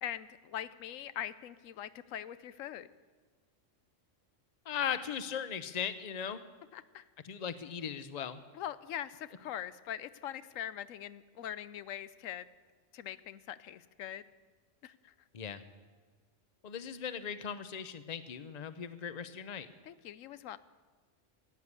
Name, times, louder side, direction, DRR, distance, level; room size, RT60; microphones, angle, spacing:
voice 1, 0.0-2.9 6.7-7.0 8.5-12.4 12.9-14.2 14.8-15.1 19.9-20.6, left 11 dB, 90° left, 15 dB, 1.0 m, -42 dB
voice 2, 4.7-6.4 7.2-8.4 15.3-15.6 16.6-19.7, left 8 dB, 40° left, 12 dB, 0.7 m, -38 dB
16.0 x 9.6 x 8.2 m, 1.4 s
omnidirectional pair, 1.3 m